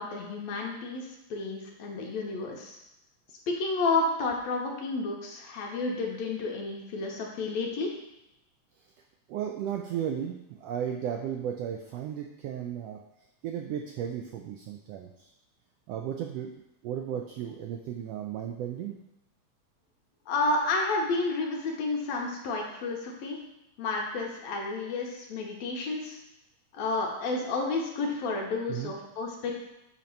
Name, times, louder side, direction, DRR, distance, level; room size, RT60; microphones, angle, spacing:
voice 1, 0.0-2.8 3.5-7.9 20.3-23.4 23.8-26.2 26.7-29.5, left 3 dB, 75° left, 0 dB, 2.1 m, -31 dB
voice 2, 9.3-13.0 13.4-15.3 15.9-16.5 16.8-19.0 28.7-28.9, right 9 dB, 85° right, 3 dB, 1.4 m, -34 dB
7.2 x 2.9 x 5.2 m, 0.90 s
omnidirectional pair, 3.3 m